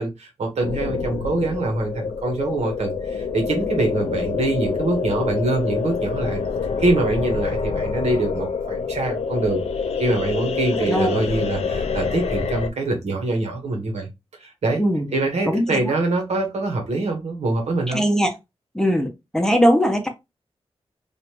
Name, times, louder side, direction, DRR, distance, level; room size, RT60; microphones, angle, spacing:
voice 1, 0.0-6.4 6.8-9.6 10.0-14.1 14.4-14.8 15.1-18.0, right 2 dB, 85° right, 1.2 m, -24 dB
sound 1, 0.6-12.7, left 5 dB, 75° left, 0.4 m, -26 dB
voice 2, 14.8-15.1 15.5-15.9 17.9-18.3 18.7-20.1, equal, 5° left, 0.7 m, -20 dB
3.3 x 2.5 x 2.9 m
wide cardioid pair, 120°, 11 cm